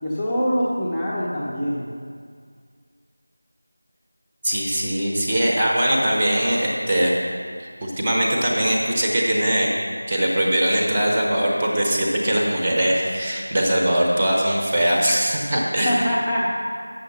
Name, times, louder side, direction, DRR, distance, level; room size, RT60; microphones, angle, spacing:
voice 1, 0.0-1.9 15.8-16.5, equal, 5° left, -11 dB, 0.7 m, -23 dB
voice 2, 4.4-7.1 7.6-9.7 10.1-16.0, right 1 dB, 20° right, -3 dB, 0.9 m, -21 dB
8.0 x 6.6 x 5.8 m, 2.1 s
figure-of-eight pair, 170°, 0 cm